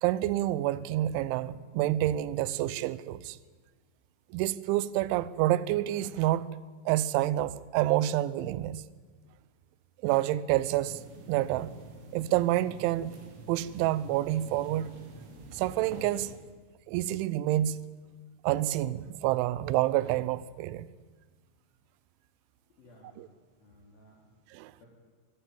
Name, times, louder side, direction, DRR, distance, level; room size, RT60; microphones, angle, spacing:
voice 1, 0.0-3.4 4.3-6.5 6.9-8.8 10.0-11.0 11.3-11.7 12.1-13.1 13.5-14.9 15.5-16.4 16.9-17.8 18.4-20.9 23.2-23.3 24.5-24.7, right 14 dB, 80° right, 2.9 m, -28 dB
sound 1, 10.5-16.3, right 3 dB, 65° right, 4.3 m, -48 dB
voice 2, 22.8-24.3 24.8-24.9, left 1 dB, 50° left, 4.7 m, -58 dB
22.5 x 14.0 x 8.9 m
omnidirectional pair, 5.8 m